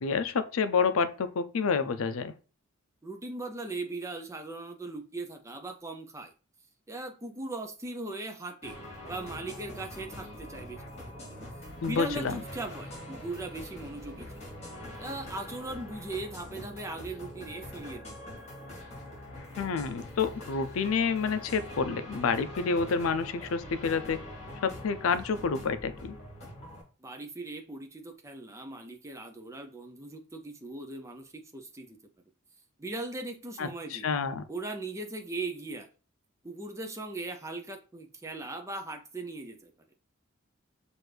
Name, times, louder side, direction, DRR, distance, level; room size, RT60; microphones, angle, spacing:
voice 1, 0.0-2.3 11.8-12.4 19.6-24.2 24.6-26.2 33.6-34.4, left 5 dB, 85° left, 0.4 m, -29 dB
voice 2, 3.0-6.3 6.9-8.8 9.1-11.4 11.9-14.3 15.0-18.2 27.0-32.0 32.8-34.1 34.5-35.9 36.4-39.7, right 2 dB, 15° right, 0.5 m, -39 dB
sound 1, 8.6-26.8, left 1 dB, 30° left, 2.3 m, -44 dB
6.1 x 2.5 x 3.3 m
head